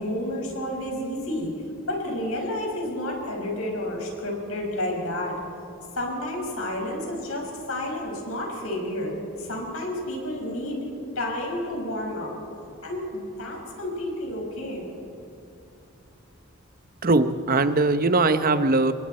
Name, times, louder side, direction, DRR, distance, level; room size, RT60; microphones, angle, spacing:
voice 1, 0.0-1.5 1.9-5.3 6.0-12.3 12.8-14.8, left 1 dB, 75° left, 0 dB, 5.9 m, -30 dB
voice 2, 17.0-18.9, right 3 dB, 40° right, 10 dB, 0.9 m, -20 dB
29.5 x 23.0 x 4.4 m, 2.7 s
head